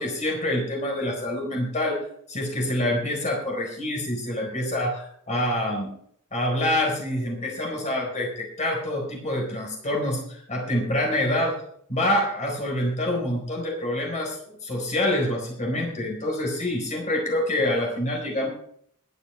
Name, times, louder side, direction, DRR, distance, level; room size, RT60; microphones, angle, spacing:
voice 1, 0.0-2.0 2.3-5.9 6.3-11.6 11.9-18.5, left 1 dB, 35° left, 0 dB, 4.4 m, -26 dB
22.0 x 9.3 x 3.4 m, 0.65 s
head